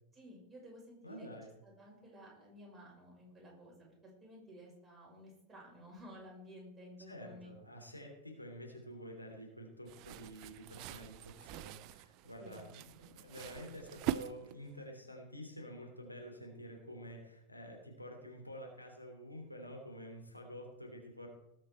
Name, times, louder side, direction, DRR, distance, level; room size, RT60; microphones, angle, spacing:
voice 1, 0.1-1.3 1.6-7.5 12.4-12.6 12.9-13.1, equal, 10° right, -3 dB, 6.0 m, -54 dB
voice 2, 1.0-1.5 7.1-21.3, equal, 85° left, 1 dB, 3.0 m, -49 dB
sound 1, 9.9-14.8, right 13 dB, 40° right, 0.5 m, -43 dB
19.0 x 7.7 x 4.6 m, 0.87 s
figure-of-eight pair, 90°, 0 cm